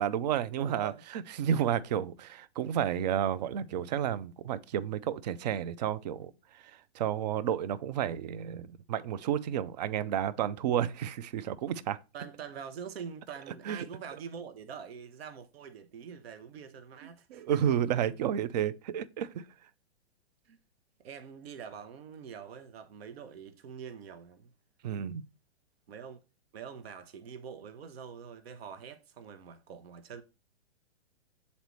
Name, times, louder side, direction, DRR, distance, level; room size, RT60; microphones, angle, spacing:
voice 1, 0.0-12.0 13.7-13.9 17.3-19.4 24.8-25.2, right 9 dB, 40° right, 0.4 m, -31 dB
voice 2, 0.6-1.0 10.6-10.8 12.1-17.8 20.5-20.6 21.0-24.5 25.9-26.2 26.5-30.2, right 7 dB, 65° right, 0.8 m, -45 dB
7.9 x 4.1 x 3.0 m
hypercardioid pair, 125°, 33 cm